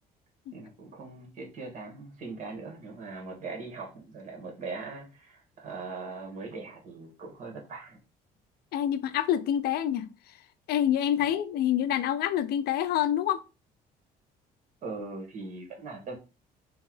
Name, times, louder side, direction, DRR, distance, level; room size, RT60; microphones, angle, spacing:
voice 1, 0.5-8.0 14.8-16.2, right 3 dB, 50° right, 1.8 m, -40 dB
voice 2, 8.7-10.1 10.7-13.4, left 10 dB, 70° left, 0.4 m, -27 dB
3.5 x 3.0 x 3.7 m
cardioid pair, 110°, 17 cm